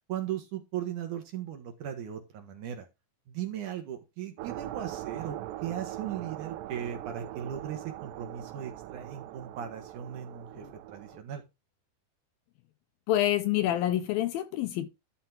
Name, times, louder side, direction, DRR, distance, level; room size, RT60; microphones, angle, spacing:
voice 1, 0.1-2.9 3.3-11.4, right 10 dB, 60° right, 2.4 m, -38 dB
sound 1, 4.4-11.2, right 14 dB, 85° right, 2.0 m, -41 dB
voice 2, 13.1-14.9, left 13 dB, 80° left, 2.3 m, -27 dB
12.0 x 4.2 x 5.9 m
omnidirectional pair, 4.7 m